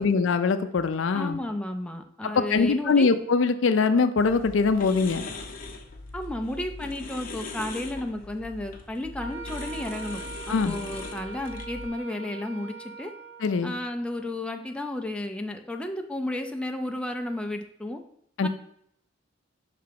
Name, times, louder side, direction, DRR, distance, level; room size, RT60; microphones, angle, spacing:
voice 1, 0.0-1.4 2.4-5.3 10.5-10.7 13.4-13.7 18.4-18.5, left 4 dB, 75° left, 10 dB, 0.4 m, -22 dB
voice 2, 1.1-3.1 6.1-13.1 13.6-18.0 18.4-18.5, left 1 dB, 5° left, 4 dB, 0.4 m, -33 dB
sound 1, 4.2-11.9, left 3 dB, 45° left, 0.7 m, -40 dB
Wind instrument woodwind instrument, 9.2-13.6, right 4 dB, 10° right, 0.9 m, -41 dB
5.7 x 3.4 x 5.1 m, 0.71 s
head